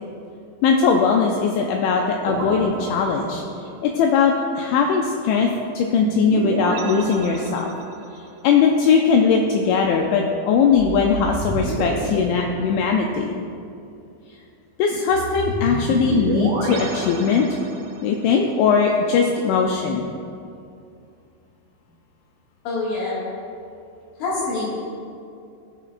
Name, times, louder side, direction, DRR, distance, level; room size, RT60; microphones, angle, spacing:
voice 1, 0.6-3.4 3.8-7.7 8.4-13.4 14.8-17.5 18.0-20.1, left 5 dB, 90° left, 2 dB, 2.6 m, -19 dB
sound 1, 2.3-3.8 6.0-8.1 10.8-13.3 15.1-18.1, right 2 dB, 80° right, 2.2 m, -29 dB
voice 2, 22.7-23.2 24.2-24.7, left 3 dB, 65° left, -7 dB, 4.0 m, -25 dB
15.5 x 6.8 x 2.5 m, 2.5 s
omnidirectional pair, 5.9 m